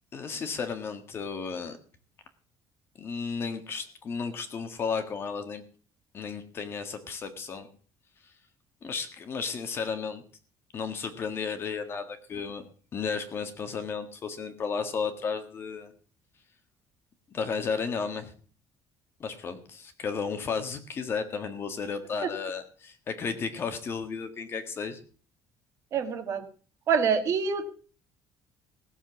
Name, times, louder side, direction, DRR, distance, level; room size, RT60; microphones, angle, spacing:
voice 1, 0.1-1.8 3.0-5.6 6.1-7.7 8.8-10.2 10.7-12.6 12.9-15.9 17.3-18.3 19.2-25.0, left 5 dB, 30° left, 8 dB, 1.6 m, -33 dB
voice 2, 25.9-26.4 26.9-27.7, right 6 dB, 40° right, 7 dB, 1.8 m, -26 dB
17.5 x 7.2 x 7.0 m, 0.42 s
cardioid pair, 175°, 8 cm